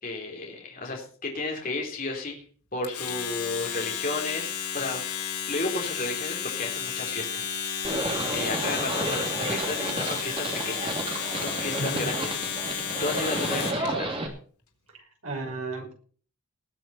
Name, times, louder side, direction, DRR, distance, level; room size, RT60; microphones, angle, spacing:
voice 1, 0.0-2.4 2.7-8.0 8.3-14.2, left 2 dB, 40° left, 0 dB, 3.8 m, -33 dB
Domestic sounds home sounds, 2.8-13.9, left 7 dB, 85° left, 3.9 m, -32 dB
Livestock farm animals working animals, 7.8-14.3, right 1 dB, 25° right, 2.9 m, -31 dB
voice 2, 11.7-12.2 14.9-15.9, right 2 dB, 70° right, 2 dB, 6.2 m, -34 dB
19.5 x 7.8 x 5.6 m, 0.43 s
head